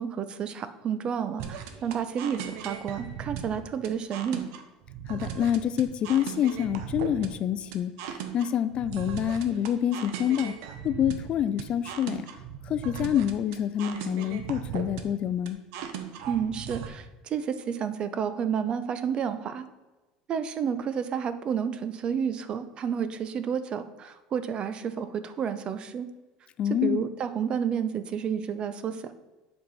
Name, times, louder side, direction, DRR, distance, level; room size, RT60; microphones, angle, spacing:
voice 1, 0.0-4.4 16.3-19.7 20.3-26.1 26.8-29.1, right 7 dB, 35° right, 12 dB, 0.6 m, -30 dB
sound 1, 1.4-16.9, right 8 dB, 75° right, 0.9 m, -38 dB
voice 2, 5.1-7.9 8.3-10.5 10.8-12.2 12.7-15.6 26.6-27.0, left 10 dB, 40° left, 13 dB, 0.4 m, -27 dB
7.7 x 4.6 x 5.4 m, 1.2 s
cardioid pair, 130°, 3 cm